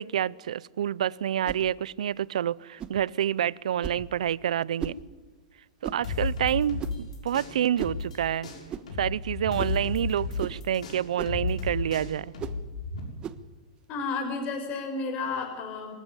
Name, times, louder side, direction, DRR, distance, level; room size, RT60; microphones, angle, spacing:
voice 1, 0.0-4.9 5.8-8.5 9.0-12.3, right 10 dB, 80° right, 23 dB, 0.6 m, -28 dB
Close Combat Thick Stick Whistle Whiz Whoosh through Air, 1.4-1.7 2.8-3.0 3.8-4.1 4.8-5.0 5.8-6.1 6.8-7.1 7.8-8.0 8.7-8.9 9.6-9.8 10.4-10.6 11.2-11.4 12.4-12.6 13.2-13.4, right 8 dB, 25° right, 1.2 m, -36 dB
sound 1, 6.0-8.2 8.4-13.0, left 4 dB, 90° left, 6.9 m, -33 dB
voice 2, 13.9-15.9, left 4 dB, 35° left, 5 dB, 6.0 m, -32 dB
24.0 x 14.5 x 9.7 m, 1.2 s
hypercardioid pair, 135°, 4 cm